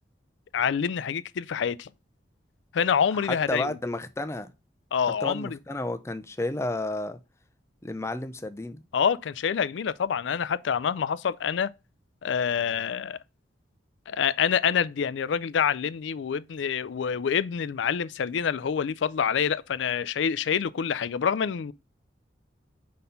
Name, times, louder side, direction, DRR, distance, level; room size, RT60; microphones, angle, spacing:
voice 1, 0.5-1.9 2.7-3.8 4.9-5.6 8.9-11.7 12.2-13.2 14.1-21.7, left 7 dB, 75° left, 0.4 m, -26 dB
voice 2, 3.3-4.5 5.0-7.2 7.8-8.8, left 2 dB, 15° left, 0.5 m, -32 dB
5.2 x 4.2 x 5.6 m
head